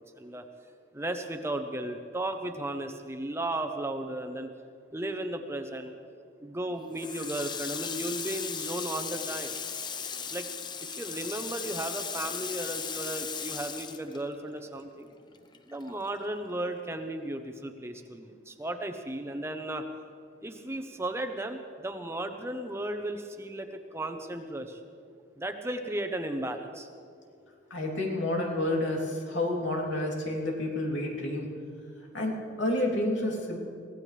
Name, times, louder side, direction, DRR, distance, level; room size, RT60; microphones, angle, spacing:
voice 1, 0.9-4.5 4.9-5.9 6.4-9.6 10.3-10.5 10.8-15.1 15.7-19.8 20.4-24.8 25.4-26.9, right 1 dB, 15° right, 6 dB, 0.8 m, -35 dB
Water tap faucet, 6.9-14.8 15.1-16.4, left 6 dB, 25° left, 0.5 m, -37 dB
voice 2, 27.7-31.5 32.1-33.6, left 1 dB, 85° left, -1 dB, 3.0 m, -29 dB
23.0 x 16.5 x 3.3 m, 2.3 s
head